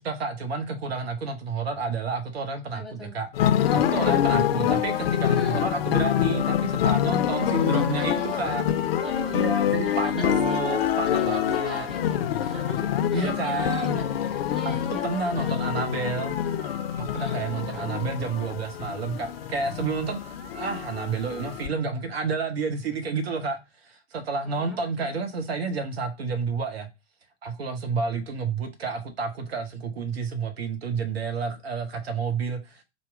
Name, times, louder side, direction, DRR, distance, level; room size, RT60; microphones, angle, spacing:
voice 1, 0.0-3.3 3.7-8.6 9.3-11.9 13.1-14.1 14.7-16.3 17.0-20.2 20.5-26.9 27.4-32.8, right 4 dB, 60° right, 0.8 m, -30 dB
voice 2, 2.7-3.2 3.6-4.2 5.4-5.6 7.3-8.6 9.0-10.8 11.1-15.6 15.9-16.1 17.1-18.0 24.4-25.2, left 1 dB, ahead, 1.0 m, -42 dB
sound 1, 3.3-21.7, left 10 dB, 60° left, 0.5 m, -26 dB
sound 2, 7.3-22.4, right 2 dB, 40° right, 1.2 m, -48 dB
4.3 x 2.1 x 4.6 m
figure-of-eight pair, 100°, 34 cm